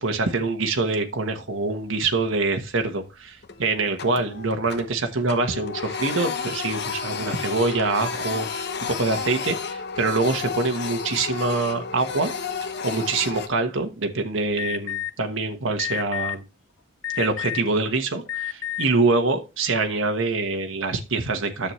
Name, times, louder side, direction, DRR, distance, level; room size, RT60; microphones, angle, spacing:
voice 1, 0.0-12.3 12.8-16.4 17.1-21.7, right 3 dB, 75° right, 1.2 m, -25 dB
Printer, 1.9-2.5 2.8-3.0 3.4-5.0 5.3-13.5, left 5 dB, 55° left, 1.0 m, -32 dB
Alarm, 14.6-15.1 15.8-16.3 17.0-17.7 18.2-18.8, left 12 dB, 80° left, 0.9 m, -29 dB
10.0 x 7.1 x 3.1 m
head